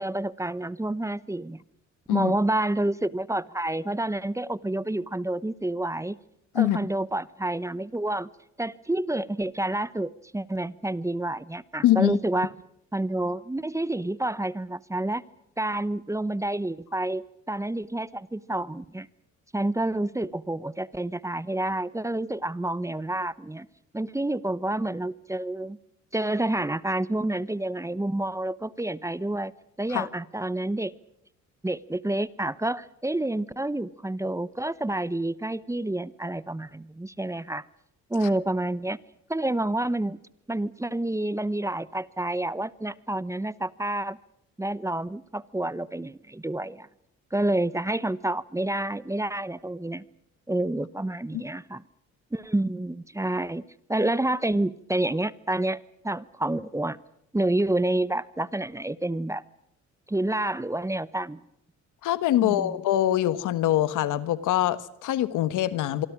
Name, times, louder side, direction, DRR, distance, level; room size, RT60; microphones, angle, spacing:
voice 1, 0.0-1.6 2.1-6.2 6.5-8.3 8.6-12.5 12.9-15.2 15.6-19.1 19.5-23.7 23.9-25.8 26.1-29.5 29.8-30.9 31.6-37.6 38.1-39.0 39.3-40.2 40.5-44.2 44.6-46.9 47.3-50.0 50.5-51.8 52.3-53.6 53.9-57.0 57.3-59.4 60.1-61.4 62.4-62.7, right 1 dB, 10° right, 18 dB, 0.9 m, -28 dB
voice 2, 11.8-12.2 29.9-30.1 51.3-51.4 62.0-66.1, left 13 dB, 85° left, 14 dB, 1.5 m, -24 dB
25.5 x 24.5 x 6.1 m, 0.76 s
cardioid pair, 90°, 30 cm